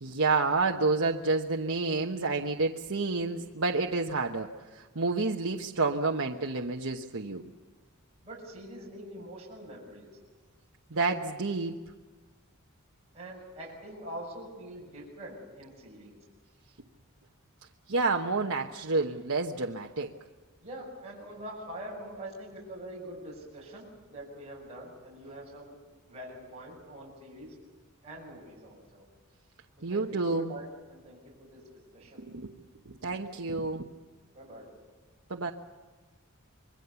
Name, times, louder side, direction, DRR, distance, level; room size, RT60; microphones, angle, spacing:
voice 1, 0.0-4.5 4.7-7.5 10.9-11.8 17.9-20.1 29.8-30.5 32.2-32.5 32.9-33.9 35.3-35.5, right 3 dB, 70° right, 1 dB, 1.2 m, -29 dB
voice 2, 8.2-10.1 13.1-16.1 20.6-25.8 26.1-27.5 28.0-29.0 29.9-31.6 31.9-32.2 34.3-34.7, right 1 dB, 30° right, -4 dB, 6.8 m, -44 dB
26.5 x 22.0 x 7.1 m, 1.3 s
head